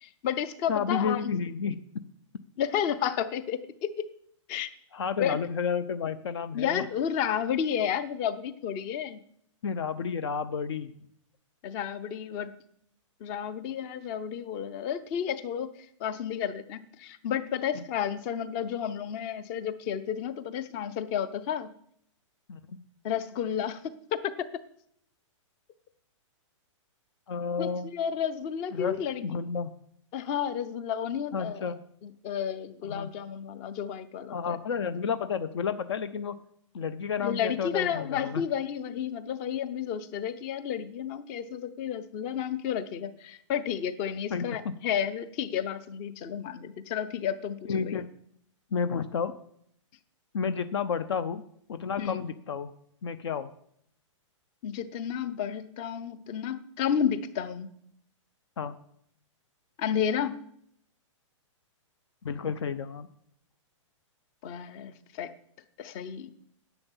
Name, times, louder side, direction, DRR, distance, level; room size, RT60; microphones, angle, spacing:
voice 1, 0.0-1.2 2.6-3.9 4.5-4.7 5.2-5.4 6.5-9.2 11.6-12.5 13.2-15.7 16.0-21.7 23.0-24.5 27.6-29.2 30.1-31.6 32.0-34.6 37.2-48.0 52.0-52.2 54.6-57.7 59.8-60.4 64.4-65.3 65.8-66.3, left 8 dB, 20° left, 15 dB, 0.5 m, -31 dB
voice 2, 0.7-1.8 4.9-6.9 9.6-10.9 17.7-17.8 22.5-22.8 27.3-27.9 28.7-29.7 31.3-31.8 32.8-33.1 34.3-36.4 36.7-38.4 44.3-44.7 47.6-48.1 48.7-49.3 50.3-51.4 51.7-52.7 53.0-53.5 58.6-58.7 62.2-63.1, left 6 dB, 55° left, 12 dB, 0.7 m, -31 dB
10.5 x 8.1 x 7.2 m, 0.69 s
hypercardioid pair, 170°, 16 cm